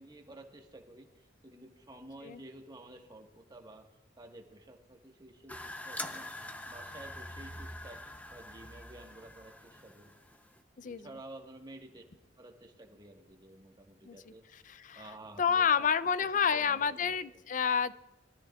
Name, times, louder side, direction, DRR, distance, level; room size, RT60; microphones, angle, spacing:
voice 1, 0.0-3.9 4.2-6.3 6.7-8.0 8.3-10.1 10.8-12.0 12.4-14.4 14.9-15.9 16.2-17.4, right 1 dB, 25° right, 3 dB, 1.5 m, -52 dB
sound 1, 5.5-10.6, left 1 dB, 10° left, 0.7 m, -44 dB
voice 2, 10.8-11.1 14.1-14.2 14.7-15.1 15.4-17.9, left 7 dB, 45° left, 15 dB, 0.5 m, -29 dB
22.0 x 13.0 x 2.4 m, 1.1 s
head